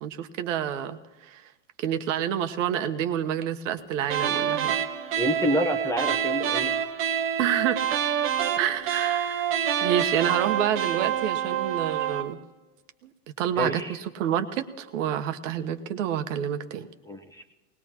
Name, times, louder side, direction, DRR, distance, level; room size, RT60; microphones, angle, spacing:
voice 1, 0.0-1.5 1.8-4.7 7.4-8.0 8.5-9.5 9.8-12.4 13.0-13.1 13.4-16.9, right 10 dB, 70° right, 8 dB, 1.2 m, -28 dB
sound 1, 4.1-12.3, right 9 dB, 35° right, 1.1 m, -27 dB
voice 2, 5.2-6.8 13.6-13.9 17.0-17.5, equal, 10° left, 5 dB, 0.9 m, -28 dB
19.5 x 19.0 x 3.0 m, 1.2 s
supercardioid pair, 125°, 39 cm